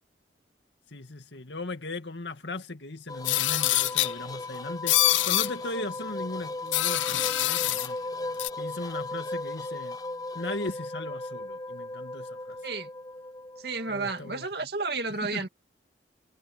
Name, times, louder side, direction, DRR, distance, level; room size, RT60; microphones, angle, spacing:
voice 1, 0.9-8.0 8.6-10.0 10.3-12.6 13.9-14.5 15.1-15.5, left 2 dB, 70° left, 2.0 m, -38 dB
sound 1, 3.1-14.5, left 2 dB, 20° left, 0.8 m, -37 dB
sound 2, 3.2-4.1 4.9-5.5 6.7-7.9 8.4-8.5, left 15 dB, 85° left, 0.5 m, -25 dB
voice 2, 13.6-15.5, right 3 dB, 60° right, 2.4 m, -32 dB
head